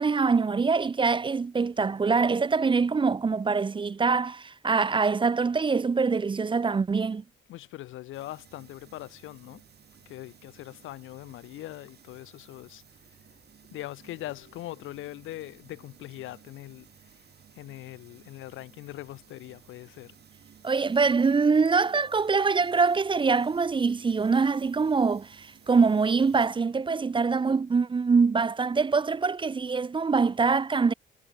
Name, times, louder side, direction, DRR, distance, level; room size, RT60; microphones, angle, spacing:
voice 1, 0.0-7.2 20.6-30.9, right 4 dB, 25° right, 0.6 m, -24 dB
voice 2, 7.5-9.6 10.0-13.2 13.7-17.2 17.5-20.1, left 15 dB, 85° left, 1.6 m, -42 dB
sound 1, 8.1-26.6, right 8 dB, 55° right, 6.9 m, -56 dB
cardioid pair, 90°, 20 cm